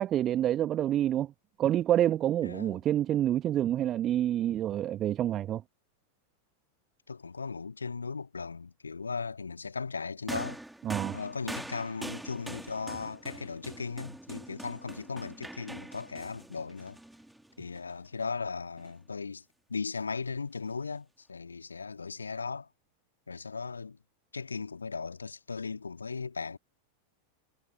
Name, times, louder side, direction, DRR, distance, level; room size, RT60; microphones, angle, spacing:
voice 1, 0.0-1.3 1.6-5.6 10.8-11.2, right 11 dB, 30° right, 1.5 m, -27 dB
voice 2, 2.4-2.8 7.1-10.6 11.1-17.0 17.6-19.4 19.7-22.7 23.3-24.0 24.3-26.6, left 4 dB, 75° left, 2.0 m, -37 dB
sound 1, 10.3-17.8 18.8-18.9, right 1 dB, 5° right, 3.0 m, -43 dB
figure-of-eight pair, 90°, 0 cm